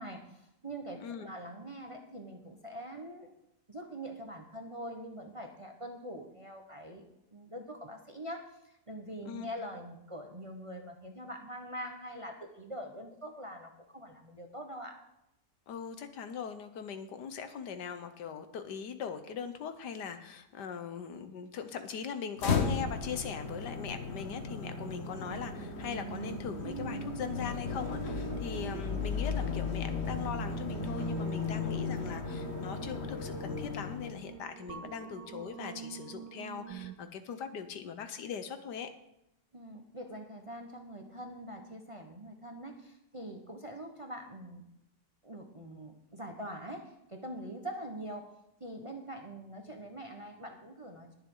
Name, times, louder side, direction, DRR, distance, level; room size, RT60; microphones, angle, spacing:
voice 1, 0.0-3.3 3.7-7.0 7.3-15.0 39.5-44.6 45.2-48.3 48.6-51.1, right 1 dB, 20° right, 3 dB, 1.0 m, -44 dB
voice 2, 15.7-38.9, left 7 dB, 75° left, 9 dB, 1.5 m, -40 dB
sound 1, 22.4-34.4, left 5 dB, 45° left, 1.2 m, -36 dB
sound 2, 22.5-37.0, right 9 dB, 80° right, 1.4 m, -45 dB
21.0 x 7.1 x 3.9 m, 0.83 s
omnidirectional pair, 1.8 m